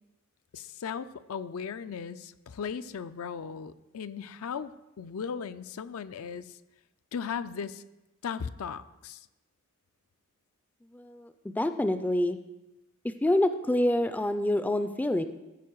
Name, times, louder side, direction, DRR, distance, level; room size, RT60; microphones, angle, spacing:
voice 1, 0.5-4.7 5.0-6.6 7.1-7.8 8.2-9.3, left 6 dB, 75° left, 13 dB, 0.4 m, -37 dB
voice 2, 10.9-12.4 13.0-15.2, left 1 dB, 10° left, 10 dB, 0.3 m, -27 dB
14.0 x 5.1 x 4.6 m, 1.0 s
head